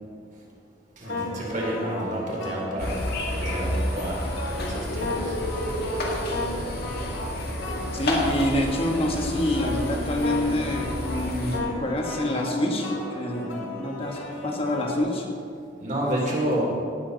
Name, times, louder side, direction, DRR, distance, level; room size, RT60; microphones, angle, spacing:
sound 1, 1.0-15.0, left 2 dB, 85° left, 2.1 m, -35 dB
voice 1, 1.0-3.0 3.3-4.3 4.6-5.3 15.8-16.7, right 1 dB, 40° right, -3 dB, 3.1 m, -29 dB
sound 2, 2.8-11.6, equal, 55° left, 1.8 m, -30 dB
voice 2, 7.9-15.3, left 1 dB, 30° left, 1 dB, 1.4 m, -27 dB
17.5 x 7.2 x 4.0 m, 2.5 s
head